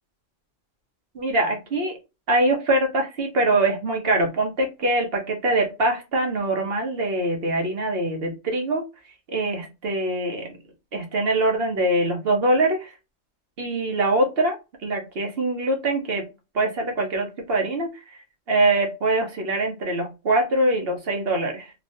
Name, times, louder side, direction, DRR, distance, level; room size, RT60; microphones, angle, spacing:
voice 1, 1.1-1.9 2.3-8.8 9.3-10.5 10.9-12.9 13.6-14.5 14.8-16.2 16.5-17.9 18.5-21.7, right 2 dB, 50° right, 3 dB, 0.9 m, -23 dB
3.1 x 2.5 x 2.6 m, 0.26 s
omnidirectional pair, 1.5 m